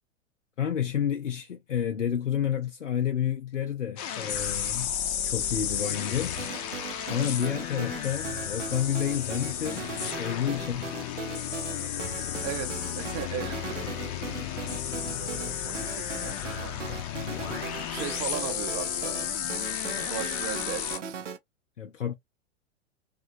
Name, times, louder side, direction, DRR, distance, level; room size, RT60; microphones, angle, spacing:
voice 1, 0.6-4.9 5.2-6.4 7.1-9.9 10.2-10.9 21.8-22.1, left 9 dB, 85° left, 0.5 m, -30 dB
sound 1, 4.0-21.0, left 9 dB, 30° left, 0.5 m, -33 dB
sound 2, 6.4-21.4, right 5 dB, 85° right, 0.6 m, -39 dB
voice 2, 12.4-13.6 15.2-17.0 17.9-19.2 20.0-21.2, right 10 dB, 35° right, 0.7 m, -37 dB
2.9 x 2.3 x 2.5 m
figure-of-eight pair, 95°, 36 cm